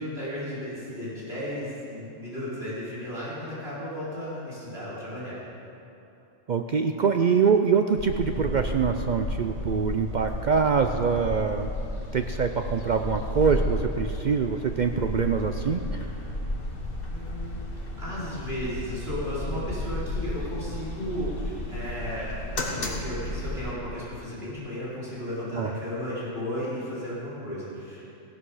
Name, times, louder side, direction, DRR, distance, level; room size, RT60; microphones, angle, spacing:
voice 1, 0.0-5.4 17.0-17.5 18.0-28.0, equal, 50° right, -9 dB, 4.1 m, -34 dB
voice 2, 6.5-11.7 12.1-16.0 25.5-25.7, right 6 dB, 70° right, 6 dB, 0.4 m, -24 dB
sound 1, 8.0-23.7, left 1 dB, 45° left, 1.5 m, -33 dB
15.5 x 11.5 x 4.9 m, 2.8 s
omnidirectional pair, 1.3 m